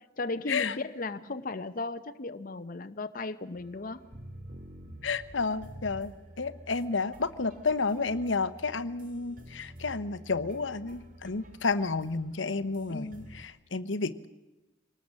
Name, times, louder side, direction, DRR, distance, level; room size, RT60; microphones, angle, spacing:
voice 1, 0.2-4.0 12.9-13.3, left 3 dB, 50° left, 8 dB, 0.8 m, -36 dB
sound 1, 3.5-13.4, right 1 dB, 45° right, 2.6 m, -49 dB
voice 2, 5.0-14.3, left 4 dB, 80° left, 11 dB, 1.0 m, -31 dB
24.5 x 19.0 x 7.5 m, 1.0 s
head